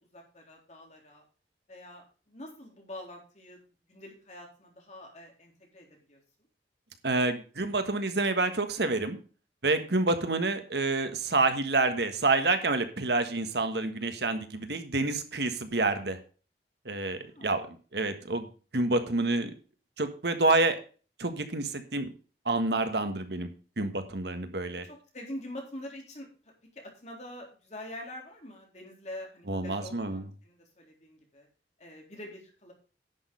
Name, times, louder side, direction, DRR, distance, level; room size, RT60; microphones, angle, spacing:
voice 1, 0.1-1.2 1.7-3.6 3.9-6.2 17.2-17.5 24.8-26.3 26.7-31.5 31.8-32.7, left 1 dB, 40° left, 0 dB, 3.8 m, -45 dB
voice 2, 7.0-9.2 9.6-16.2 16.8-17.6 17.9-18.5 18.7-19.5 20.0-20.8 21.2-22.1 22.4-23.5 23.8-24.8 29.5-30.2, right 3 dB, 70° right, 8 dB, 1.5 m, -28 dB
11.0 x 6.4 x 5.4 m, 0.37 s
head